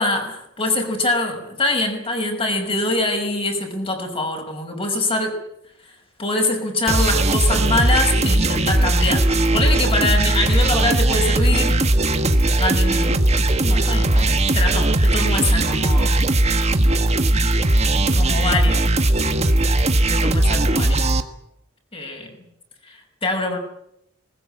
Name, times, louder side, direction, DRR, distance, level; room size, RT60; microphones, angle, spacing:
voice 1, 0.0-5.3 6.2-11.9 12.6-13.3 13.6-16.2 18.0-18.9 20.1-21.1 21.9-22.3 22.9-23.6, left 2 dB, 30° left, 3 dB, 5.8 m, -24 dB
sound 1, 6.9-21.2, right 1 dB, 35° right, 1.6 m, -18 dB
20.5 x 20.5 x 8.8 m, 0.79 s
head